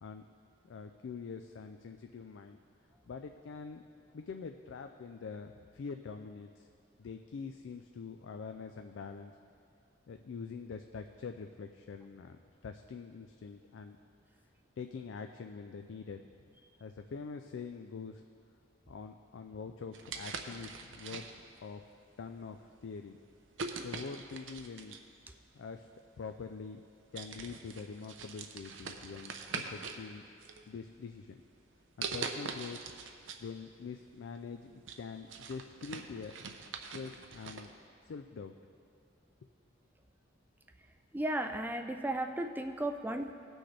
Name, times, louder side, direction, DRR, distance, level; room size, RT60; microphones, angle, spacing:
voice 1, 0.7-2.6 3.1-3.8 4.1-6.7 7.0-9.3 10.1-14.0 14.8-16.2 16.8-18.2 18.9-21.3 21.6-21.8 22.2-23.2 23.8-25.0 25.5-25.9 26.2-26.8 27.1-30.2 30.7-31.4 32.0-32.8 33.4-36.4 36.9-37.7 38.0-38.5, left 5 dB, 70° left, 6 dB, 0.4 m, -44 dB
sound 1, 19.9-21.6 22.3-22.5 23.6-25.1 26.2-26.3 26.8-26.9 27.1-30.0 30.4-31.1 32.0-33.4 33.8-33.9 34.4-37.7, right 5 dB, 80° right, 0.7 m, -43 dB
voice 2, 41.1-43.3, right 1 dB, 10° right, 6 dB, 0.3 m, -35 dB
18.0 x 6.2 x 3.3 m, 2.4 s
head